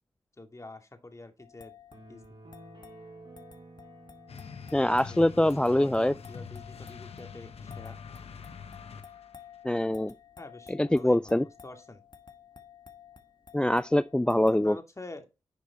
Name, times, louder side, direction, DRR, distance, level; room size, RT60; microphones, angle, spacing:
voice 1, 0.4-1.7 2.1-2.2 5.1-8.0 10.4-12.0 14.5-15.3, left 2 dB, 30° left, 2.3 m, -47 dB
sound 1, 1.4-14.7, left 8 dB, 45° left, 1.5 m, -53 dB
sound 2, 1.9-5.5, right 2 dB, 50° right, 4.7 m, -52 dB
sound 3, 4.3-9.4, left 6 dB, 70° left, 1.1 m, -45 dB
voice 2, 4.7-6.1 9.6-10.1 10.7-11.4 13.5-14.8, left 1 dB, 10° left, 0.3 m, -24 dB
10.5 x 5.0 x 4.2 m
cardioid pair, 45°, 11 cm